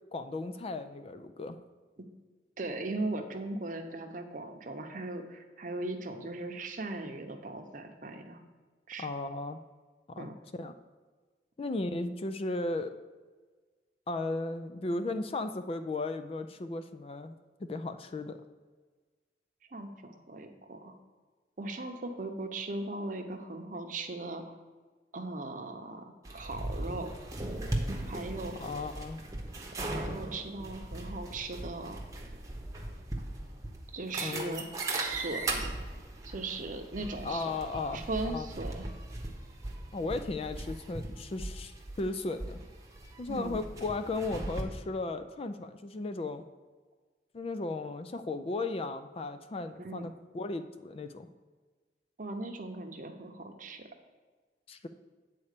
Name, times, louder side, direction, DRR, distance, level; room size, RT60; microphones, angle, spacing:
voice 1, 0.1-1.6 9.0-9.6 10.1-10.3 10.6-10.7 11.6-12.9 14.1-17.4 17.6-18.4 28.6-29.2 34.2-34.6 37.2-38.5 39.9-42.6 43.2-46.4 47.3-51.3 54.7-54.9, left 2 dB, 35° left, 9 dB, 0.3 m, -35 dB
voice 2, 2.6-8.4 8.9-9.1 10.2-10.3 19.7-20.9 21.6-24.4 25.1-27.1 28.1-28.6 29.8-32.0 33.9-34.6 34.9-35.7 36.2-37.5 37.9-38.9 43.3-43.6 49.8-50.1 52.2-53.9, right 2 dB, 45° right, 4 dB, 0.8 m, -38 dB
sound 1, 26.2-44.6, right 2 dB, 20° right, 0.9 m, -38 dB
8.3 x 4.3 x 6.6 m, 1.4 s
head